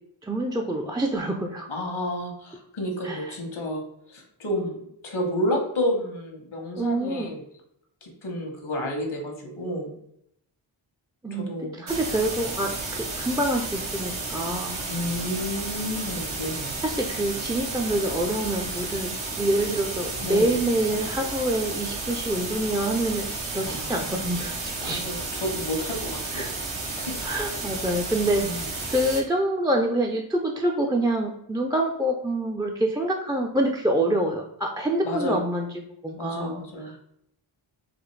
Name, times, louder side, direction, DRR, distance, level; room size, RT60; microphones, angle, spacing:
voice 1, 0.2-1.7 3.0-3.3 6.8-7.3 11.2-14.9 16.8-23.3 23.5-25.0 26.3-26.5 27.2-35.7 36.0-36.6, right 1 dB, 10° right, 1 dB, 0.3 m, -26 dB
voice 2, 1.7-3.8 4.1-7.4 8.0-9.9 11.3-11.9 14.9-16.7 20.2-20.5 23.6-24.1 24.8-27.2 28.4-28.7 35.0-35.4 36.2-36.9, left 1 dB, 80° left, 2 dB, 1.0 m, -31 dB
sound 1, 11.9-29.2, right 3 dB, 80° right, 0.9 m, -32 dB
4.0 x 2.6 x 3.2 m, 0.75 s
wide cardioid pair, 65°, 47 cm